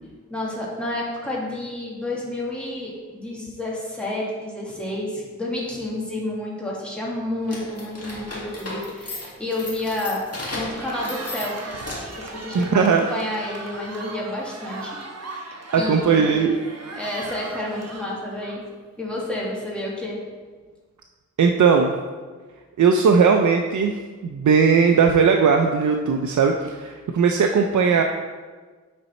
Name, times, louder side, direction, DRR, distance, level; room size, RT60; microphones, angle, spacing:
voice 1, 0.3-10.2 10.5-11.9 12.2-12.8 13.1-15.0 15.3-16.3 16.9-18.7 19.0-20.2, left 1 dB, 5° left, -5 dB, 1.9 m, -30 dB
sound 1, 7.4-12.3, left 2 dB, 55° left, 1.9 m, -35 dB
Cheering, 10.6-18.9, right 2 dB, 60° right, 0.9 m, -37 dB
voice 2, 12.5-13.1 15.7-16.6 21.4-21.9 22.8-23.9 24.2-28.0, right 5 dB, 80° right, 3 dB, 0.5 m, -18 dB
8.6 x 4.0 x 4.2 m, 1.4 s
wide cardioid pair, 60°, 29 cm